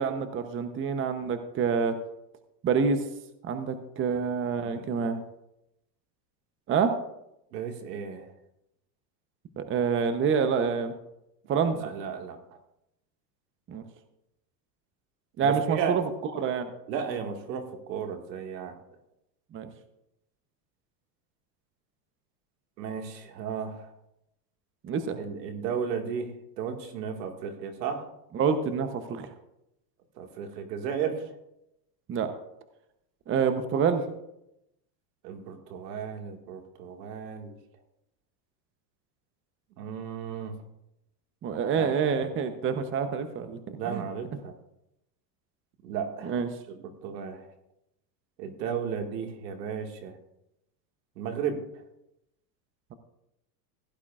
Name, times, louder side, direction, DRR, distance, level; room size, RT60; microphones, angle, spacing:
voice 1, 0.0-2.0 2.6-3.0 3.4-5.2 6.7-6.9 9.6-10.9 11.5-11.8 13.7-13.8 15.4-16.0 16.3-16.7 19.5-19.7 24.8-25.2 28.3-29.3 32.1-32.3 33.3-34.0 41.4-44.0 46.2-46.5, right 6 dB, 25° right, 8 dB, 0.9 m, -27 dB
voice 2, 4.6-5.0 7.5-8.3 11.7-12.4 15.4-16.0 16.9-18.7 22.8-23.9 25.2-28.1 30.2-31.3 35.2-37.6 39.8-40.6 41.8-41.9 43.8-44.5 45.8-47.5 48.4-50.1 51.2-51.8, right 7 dB, 85° right, 4 dB, 2.1 m, -34 dB
16.0 x 11.0 x 2.5 m, 0.84 s
supercardioid pair, 130°, 49 cm